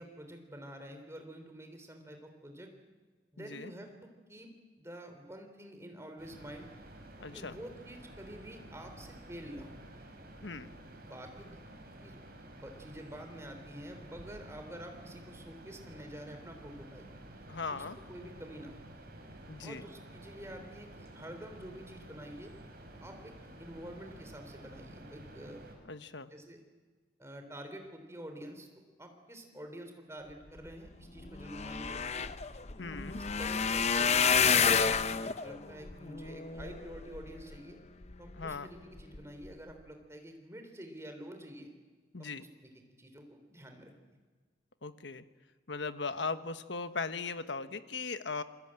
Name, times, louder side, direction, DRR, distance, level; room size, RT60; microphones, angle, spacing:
voice 1, 0.0-2.7 3.3-4.5 4.8-6.7 7.3-9.8 11.0-11.6 12.0-12.2 12.5-17.1 17.7-18.9 19.6-22.5 23.0-25.6 26.3-26.6 27.2-28.7 29.0-32.3 33.0-34.9 35.4-37.8 38.2-41.7 42.2-42.7 43.0-44.2, right 1 dB, 15° right, 5 dB, 3.5 m, -48 dB
voice 2, 3.4-3.7 7.2-7.6 10.4-10.7 17.5-18.0 19.5-19.8 25.9-26.3 32.8-33.2 38.4-38.7 42.1-42.5 44.8-45.2 45.7-48.4, left 4 dB, 75° left, 10 dB, 1.3 m, -38 dB
sound 1, 6.2-25.7, right 1 dB, 55° right, 5.6 m, -51 dB
sound 2, 30.9-31.0 31.2-37.6 38.1-38.5 39.0-39.2 39.4-39.5, left 6 dB, 35° left, 0.8 m, -30 dB
27.5 x 22.0 x 8.9 m, 1.4 s
head